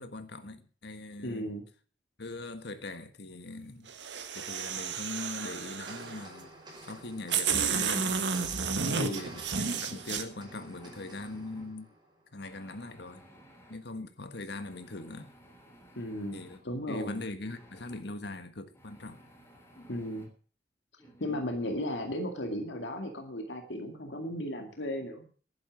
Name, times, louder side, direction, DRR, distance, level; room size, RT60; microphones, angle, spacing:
voice 1, 0.0-1.5 2.2-3.9 4.3-6.5 6.8-8.2 8.9-11.9 12.3-13.2 13.7-15.3 16.3-16.6 16.9-19.2, left 2 dB, 65° left, 1.6 m, -41 dB
voice 2, 1.2-1.6 8.9-9.3 16.0-16.4 16.6-17.2 19.8-20.3 21.2-25.3, left 1 dB, 85° left, 2.3 m, -35 dB
sound 1, 3.9-6.2 6.9-7.0 7.3-10.2, right 6 dB, 80° right, 1.8 m, -32 dB
sound 2, 5.9-12.5, right 1 dB, 25° right, 5.8 m, -51 dB
sound 3, 9.7-11.7 12.4-13.8 14.5-16.6 17.4-18.0 18.7-20.3 21.0-22.2, right 1 dB, 15° left, 3.7 m, -55 dB
11.5 x 10.5 x 7.2 m
head